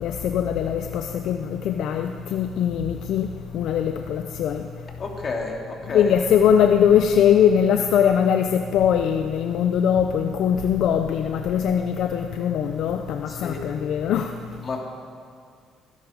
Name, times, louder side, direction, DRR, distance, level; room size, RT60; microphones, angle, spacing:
voice 1, 0.0-3.3 3.5-4.6 5.9-14.3, left 8 dB, 70° left, 6 dB, 0.6 m, -21 dB
voice 2, 5.0-6.1 13.3-13.7 14.6-14.8, left 3 dB, 40° left, 0 dB, 3.0 m, -31 dB
25.5 x 10.5 x 5.3 m, 2.2 s
cardioid pair, 95°, 0 cm